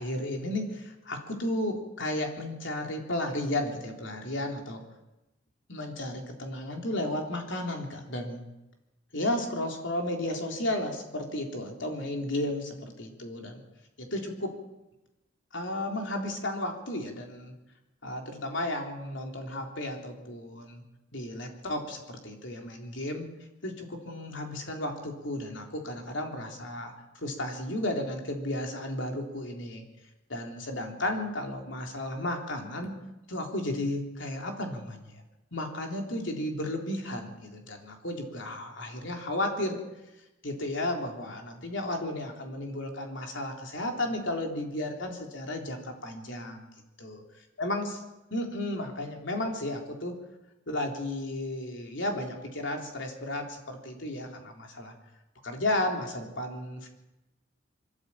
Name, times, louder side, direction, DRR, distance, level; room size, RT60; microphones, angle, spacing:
voice 1, 0.0-4.8 5.7-8.4 9.1-13.6 14.0-14.5 15.5-17.5 18.0-20.8 21.1-23.3 23.6-29.8 30.3-33.0 33.3-35.2 35.5-39.8 40.4-46.7 47.0-47.2 47.6-48.0 48.3-50.2 50.7-54.9 55.4-56.9, left 1 dB, 65° left, 2 dB, 3.6 m, -33 dB
23.0 x 13.0 x 8.6 m, 0.96 s
head